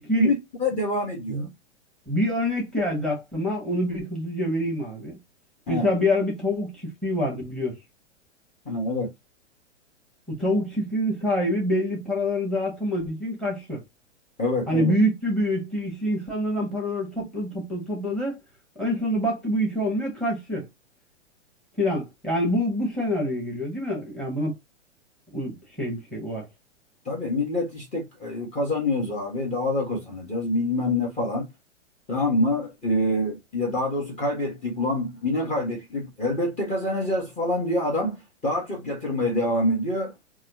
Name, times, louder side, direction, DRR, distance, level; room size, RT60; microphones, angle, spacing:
voice 1, 0.2-1.5 5.7-5.9 8.6-9.1 14.4-14.9 27.0-31.5 32.1-40.1, left 1 dB, 20° left, 1.6 m, -26 dB
voice 2, 2.1-5.2 5.7-7.8 10.3-13.8 14.7-18.4 18.8-20.7 21.8-24.5 25.3-26.5, left 1 dB, ahead, 1.6 m, -26 dB
4.2 x 2.3 x 2.7 m
hypercardioid pair, 120°, 36 cm